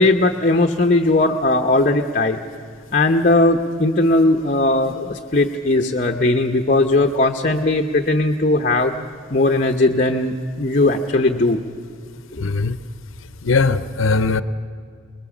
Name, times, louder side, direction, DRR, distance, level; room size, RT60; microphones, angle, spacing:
voice 1, 0.0-2.4 2.9-8.9 9.3-11.6 12.3-12.4, left 2 dB, 40° left, 5 dB, 0.8 m, -18 dB
voice 2, 12.4-12.8 13.4-14.4, left 4 dB, 85° left, 14 dB, 0.7 m, -19 dB
23.5 x 20.5 x 7.2 m, 2.3 s
head